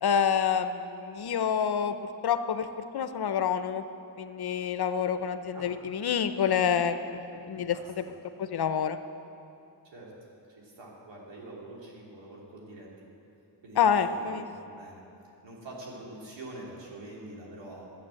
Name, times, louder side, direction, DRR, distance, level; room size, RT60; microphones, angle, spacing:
voice 1, 0.0-2.0 2.2-2.7 2.9-3.8 4.2-7.2 7.5-8.1 8.4-9.0 13.8-14.4, left 7 dB, 60° left, 10 dB, 0.7 m, -27 dB
voice 2, 7.7-8.2 9.8-10.1 10.5-13.1 13.6-14.5 14.8-15.0 15.4-17.9, right 2 dB, 75° right, -3 dB, 2.9 m, -45 dB
11.5 x 8.5 x 7.6 m, 2.7 s
cardioid pair, 80°, 44 cm